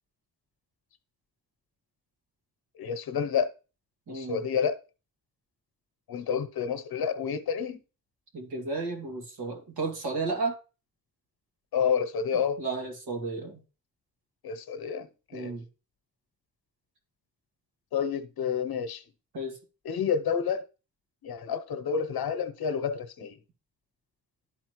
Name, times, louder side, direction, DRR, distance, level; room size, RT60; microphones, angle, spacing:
voice 1, 2.8-3.5 4.1-4.8 6.1-7.8 11.7-12.6 14.4-15.5 17.9-19.0 19.8-20.6 21.2-23.4, left 7 dB, 80° left, 0.9 m, -29 dB
voice 2, 4.1-4.4 8.3-10.6 12.6-13.6 15.3-15.7 19.3-19.6, right 3 dB, 90° right, 2.4 m, -33 dB
11.5 x 4.2 x 3.1 m
wide cardioid pair, 145°, 36 cm